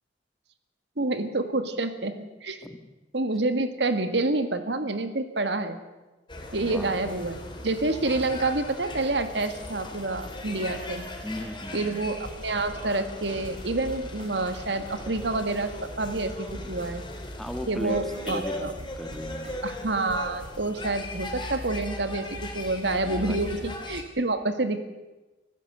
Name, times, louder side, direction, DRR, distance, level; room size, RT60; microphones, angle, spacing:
voice 1, 1.0-2.6 3.1-5.8 6.5-11.0 11.7-17.0 17.7-18.7 19.6-24.8, right 2 dB, 70° right, 9 dB, 1.8 m, -28 dB
sound 1, 6.3-24.0, left 1 dB, 25° left, 3.1 m, -38 dB
voice 2, 6.5-6.9 11.2-12.0 17.4-19.5 23.0-23.4, equal, ahead, 7 dB, 1.5 m, -37 dB
sound 2, 8.3-8.4 8.7-8.8 9.0-9.1 9.3-9.4 9.7-9.8 10.0-10.1 10.3-10.4 10.6-10.7 11.0-11.1 11.3-11.7 11.9-12.0 12.2-14.6 14.9-17.2 17.5-18.5 18.8-19.8 20.1-20.7, right 1 dB, 50° right, 5.5 m, -46 dB
24.5 x 15.0 x 7.9 m, 1.1 s
head